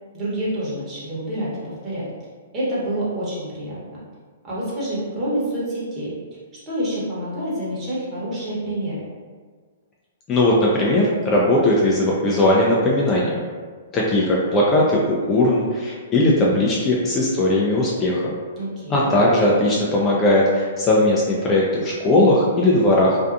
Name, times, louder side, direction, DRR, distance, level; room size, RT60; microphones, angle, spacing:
voice 1, 0.1-2.1 2.5-4.0 4.4-6.1 6.7-9.0 18.6-19.1, right 1 dB, 20° right, -9 dB, 1.0 m, -27 dB
voice 2, 10.3-13.4 13.9-18.3 18.9-23.2, left 1 dB, 20° left, -4 dB, 0.4 m, -18 dB
2.6 x 2.3 x 2.4 m, 1.6 s
hypercardioid pair, 140°, 0 cm